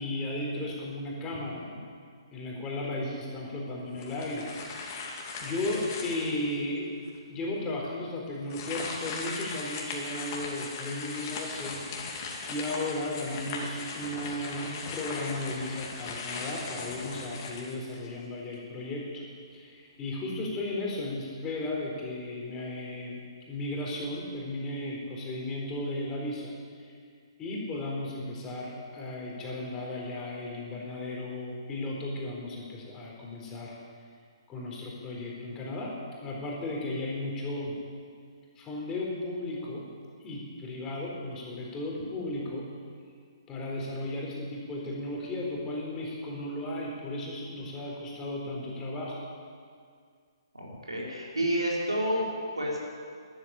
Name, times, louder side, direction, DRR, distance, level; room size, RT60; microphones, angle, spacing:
voice 1, 0.0-1.6 2.3-4.5 4.9-5.0 5.4-6.9 7.3-11.8 12.1-12.2 12.5-19.2 19.5-23.2 23.5-26.5 26.8-26.9 27.4-33.8 34.5-36.0 36.2-37.8 38.6-39.9 40.2-42.7 43.5-49.2, left 1 dB, 20° left, -2 dB, 4.0 m, -35 dB
sound 1, 4.0-6.5 7.1-7.2 8.4-18.2, left 4 dB, 35° left, 2.7 m, -38 dB
voice 2, 50.5-52.8, equal, 85° right, -3 dB, 4.7 m, -30 dB
13.0 x 12.0 x 8.8 m, 2.1 s
figure-of-eight pair, 135°, 3 cm